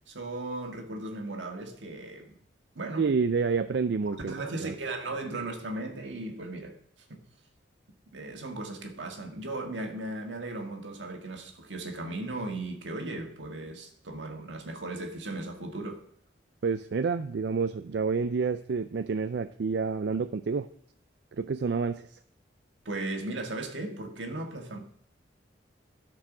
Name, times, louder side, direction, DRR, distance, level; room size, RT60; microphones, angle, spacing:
voice 1, 0.1-2.3 2.7-3.1 4.3-6.8 7.1-7.2 8.1-16.0 22.8-24.8, right 2 dB, 80° right, 1.7 m, -37 dB
voice 2, 3.0-4.3 4.6-4.7 16.6-20.7 21.4-22.1, right 5 dB, 60° right, 0.4 m, -28 dB
13.0 x 4.8 x 6.0 m
head